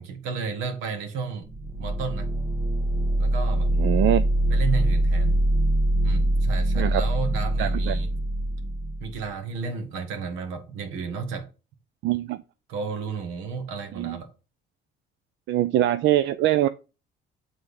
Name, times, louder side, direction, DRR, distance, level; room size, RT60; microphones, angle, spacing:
voice 1, 0.0-1.5 1.8-2.3 3.2-3.7 4.5-5.4 6.0-8.1 9.0-11.5 12.7-14.3, right 5 dB, 90° right, 1.6 m, -32 dB
sound 1, 1.4-9.2, right 1 dB, 45° right, 1.3 m, -23 dB
voice 2, 3.8-4.3 6.8-7.0 7.6-8.0 12.0-12.4 14.0-14.2 15.5-16.7, right 13 dB, 70° right, 0.5 m, -23 dB
7.9 x 3.6 x 5.1 m
cardioid pair, 95°, 20 cm